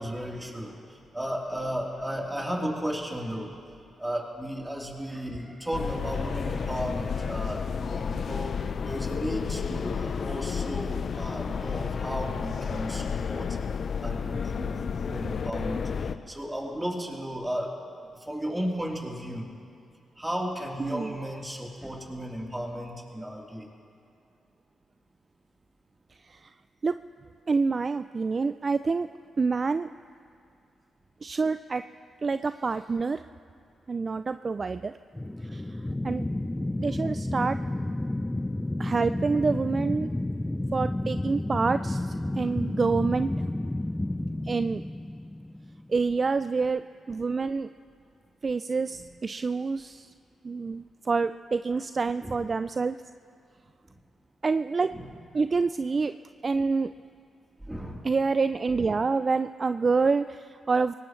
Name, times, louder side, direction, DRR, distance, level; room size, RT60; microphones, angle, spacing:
voice 1, 0.0-3.5 4.0-13.6 14.0-17.7 18.1-19.5 20.2-23.7 52.2-52.3 54.9-55.1 57.7-58.0, equal, 15° right, -2 dB, 3.6 m, -34 dB
sound 1, 5.7-16.2, left 6 dB, 60° left, 0.6 m, -31 dB
voice 2, 20.8-21.1 26.2-26.5 26.8-27.0 27.5-29.1 29.4-29.9 31.2-31.8 32.2-33.2 33.9-35.0 35.4-36.2 36.8-37.6 38.8-40.1 40.7-43.3 44.4-44.8 45.9-47.7 48.4-50.1 50.4-53.0 54.4-54.9 55.3-56.1 56.4-56.9 58.0-60.9, right 4 dB, 45° right, 12 dB, 0.3 m, -27 dB
sound 2, 35.1-46.1, left 1 dB, 15° left, 0.6 m, -31 dB
22.0 x 18.0 x 3.2 m, 2.4 s
supercardioid pair, 50°, 0 cm